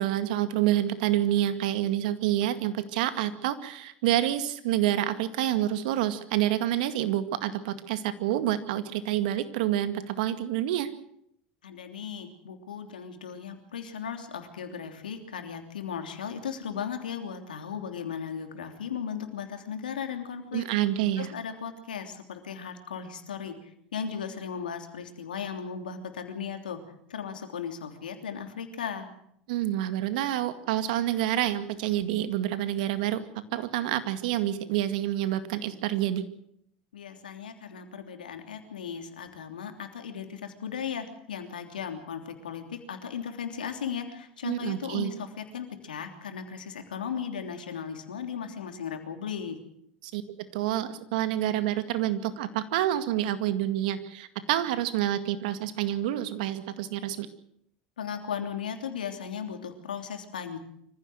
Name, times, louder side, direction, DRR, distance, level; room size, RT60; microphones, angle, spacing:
voice 1, 0.0-10.9 20.5-21.3 29.5-33.2 33.5-36.2 44.4-45.1 50.0-50.2 50.5-57.3, right 12 dB, 70° right, 10 dB, 2.0 m, -28 dB
voice 2, 11.6-20.6 21.2-23.5 23.9-26.8 27.1-29.1 36.9-49.6 58.0-60.6, left 7 dB, 90° left, 5 dB, 3.2 m, -36 dB
25.0 x 15.5 x 7.9 m, 0.73 s
hypercardioid pair, 90°, 5 cm